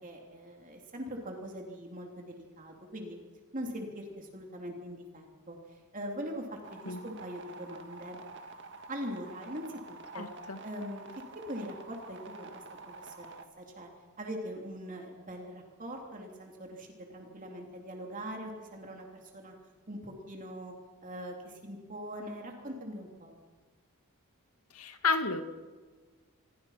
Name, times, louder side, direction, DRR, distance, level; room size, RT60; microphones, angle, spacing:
voice 1, 0.0-3.2 3.5-8.2 8.9-10.3 10.6-11.0 11.3-13.9 14.2-19.5 19.9-20.7 21.0-23.4, equal, 35° right, 1 dB, 3.2 m, -42 dB
sound 1, 6.6-13.4, right 3 dB, 55° right, 1.9 m, -48 dB
voice 2, 10.1-10.6 24.7-25.4, left 4 dB, 85° left, 7 dB, 2.2 m, -31 dB
27.5 x 22.5 x 5.9 m, 1.4 s
head